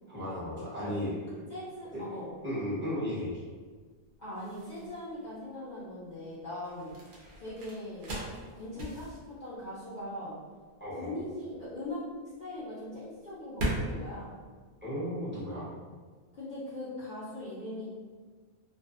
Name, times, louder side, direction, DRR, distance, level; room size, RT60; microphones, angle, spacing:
voice 1, 0.1-1.1 1.9-2.0 2.4-3.4 10.8-11.1 14.8-15.7, equal, 10° right, -10 dB, 0.8 m, -34 dB
voice 2, 1.5-2.3 4.2-6.9 7.4-8.1 8.5-10.4 11.0-12.0 12.4-14.3 16.3-17.9, left 1 dB, 50° left, -10 dB, 0.6 m, -40 dB
sound 1, 2.4-15.4, right 1 dB, 70° right, 0.9 m, -41 dB
2.5 x 2.3 x 2.4 m, 1.5 s
omnidirectional pair, 1.2 m